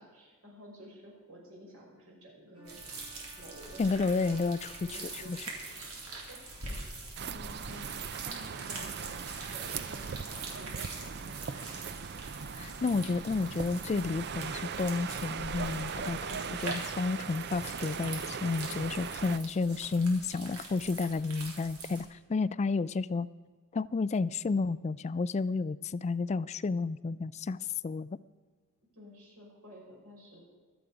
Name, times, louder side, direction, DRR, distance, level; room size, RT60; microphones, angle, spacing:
voice 1, 0.0-2.8 3.4-11.7 28.9-30.4, equal, 65° right, -2 dB, 5.6 m, -52 dB
Bowed string instrument, 2.5-6.3, equal, 25° right, 1.8 m, -58 dB
sound 1, 2.7-22.0, right 3 dB, 85° right, 3.6 m, -45 dB
voice 2, 3.8-4.7 5.1-5.5 12.6-23.3 23.7-28.2, left 4 dB, 30° left, 18 dB, 0.3 m, -31 dB
sound 2, 7.2-19.4, right 6 dB, 50° right, 0.5 m, -39 dB
24.5 x 8.2 x 5.0 m, 1.5 s
head